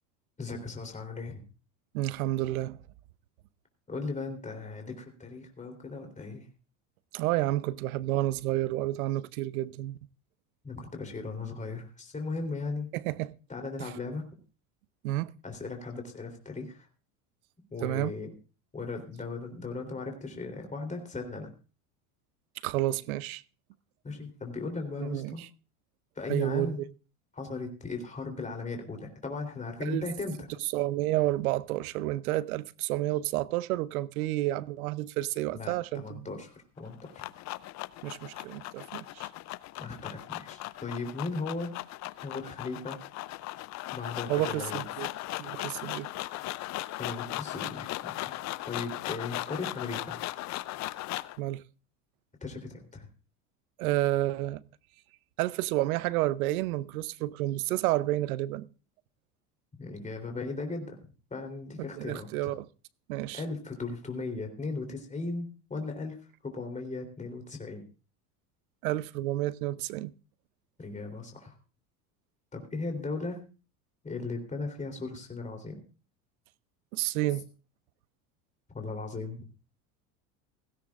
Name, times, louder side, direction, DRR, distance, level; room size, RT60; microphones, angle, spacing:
voice 1, 0.4-1.4 3.9-6.5 10.6-12.9 13.5-14.3 15.4-16.9 17.7-18.3 18.7-21.5 24.0-25.4 26.1-26.8 27.3-30.5 35.5-37.3 39.8-41.7 42.2-43.0 43.9-44.8 47.0-48.3 48.6-50.2 52.4-53.1 59.8-61.0 61.3-62.5 63.3-66.2 66.4-67.8 70.8-71.5 72.5-73.4 74.0-75.8 78.7-79.5, left 3 dB, 15° left, 3.4 m, -37 dB
voice 2, 1.9-2.8 7.1-10.0 12.9-13.3 13.8-13.9 15.0-15.3 17.8-18.1 22.6-23.4 25.1-25.3 26.3-26.7 29.8-30.0 30.7-36.2 38.0-39.3 44.3-45.1 45.4-46.1 51.4-51.6 53.8-54.6 55.4-58.7 62.0-62.7 63.1-63.4 68.8-70.1 76.9-77.4, right 16 dB, 80° right, 0.7 m, -30 dB
sound 1, 36.8-51.4, left 17 dB, 40° left, 0.5 m, -38 dB
16.5 x 16.0 x 2.5 m
supercardioid pair, 100°, 42 cm